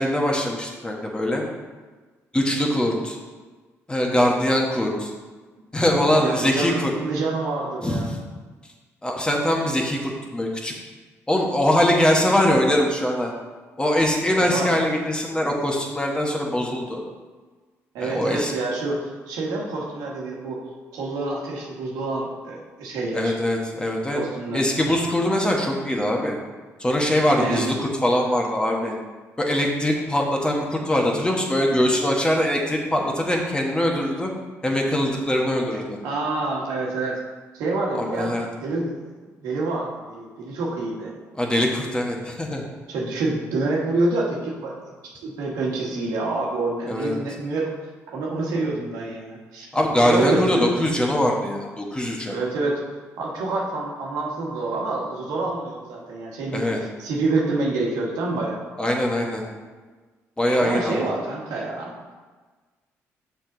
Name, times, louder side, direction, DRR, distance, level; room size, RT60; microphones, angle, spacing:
voice 1, 0.0-1.4 2.3-3.2 3.9-5.1 5.7-6.9 7.8-8.2 9.0-10.7 11.3-13.3 13.8-17.0 18.0-18.5 23.1-24.2 24.5-26.4 26.8-29.0 29.4-34.3 34.6-36.0 37.9-38.4 41.4-42.6 46.9-47.1 49.7-52.3 56.5-56.8 58.8-59.4 60.4-61.1, left 1 dB, 15° left, 0 dB, 1.3 m, -22 dB
voice 2, 6.0-8.1 14.4-14.7 17.9-20.6 20.9-23.3 24.1-24.6 27.3-27.7 36.0-37.2 37.5-38.9 39.2-41.1 42.9-44.7 45.2-47.7 48.1-49.7 50.0-50.7 52.3-52.8 53.2-56.6 57.0-58.6 60.6-61.9, right 2 dB, 85° right, -2 dB, 1.4 m, -27 dB
6.7 x 4.8 x 3.9 m, 1.3 s
supercardioid pair, 70°, 6 cm